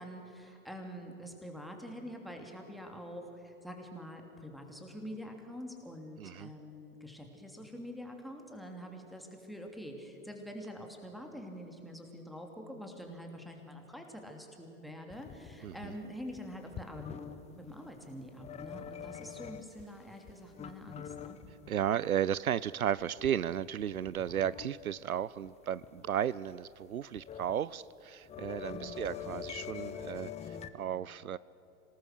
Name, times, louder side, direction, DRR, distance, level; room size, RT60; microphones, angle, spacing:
voice 1, 0.0-21.4 28.6-29.4, equal, ahead, 3 dB, 2.9 m, -46 dB
voice 2, 6.2-6.5 15.6-15.9 21.7-31.4, right 10 dB, 80° right, 20 dB, 0.6 m, -34 dB
sound 1, 15.1-17.4 18.4-19.8 20.2-22.0 22.4-22.5 23.0-24.7 25.1-25.2 25.4-25.5 25.8-26.1 27.0-27.6 27.8-30.7, left 9 dB, 15° left, 0.8 m, -45 dB
26.0 x 19.0 x 6.6 m, 3.0 s
figure-of-eight pair, 105°, 42 cm